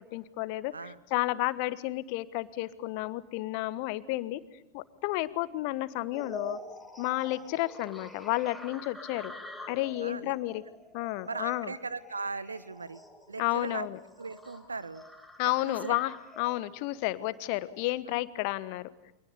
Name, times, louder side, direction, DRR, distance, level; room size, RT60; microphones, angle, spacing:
voice 1, 0.0-4.4 4.7-6.6 7.0-9.3 9.7-10.6 10.9-11.7 13.4-14.0 15.4-18.8, left 18 dB, 45° left, 16 dB, 1.3 m, -31 dB
sound 1, 6.1-17.9, left 1 dB, ahead, 4.5 m, -47 dB
voice 2, 10.0-10.3 11.3-13.0 13.3-13.9 14.2-15.0 15.4-16.0 18.1-18.2, right 4 dB, 75° right, 17 dB, 1.2 m, -38 dB
29.5 x 25.5 x 7.0 m, 0.82 s
figure-of-eight pair, 90°, 0 cm